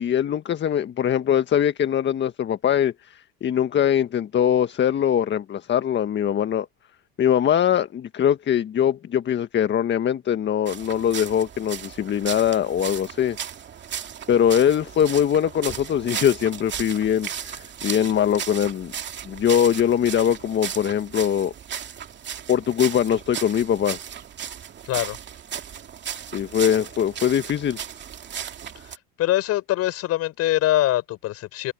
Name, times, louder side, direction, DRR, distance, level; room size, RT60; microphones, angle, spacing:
voice 1, 0.0-6.7 7.2-13.4 14.3-18.9 19.2-21.5 22.5-24.0 26.3-27.8, left 9 dB, 40° left, 1.6 m, -22 dB
sound 1, 10.6-29.0, right 8 dB, 40° right, 2.4 m, -35 dB
voice 2, 24.9-25.2 29.2-31.7, left 15 dB, 55° left, 7.1 m, -23 dB
hypercardioid pair, 80°, 29 cm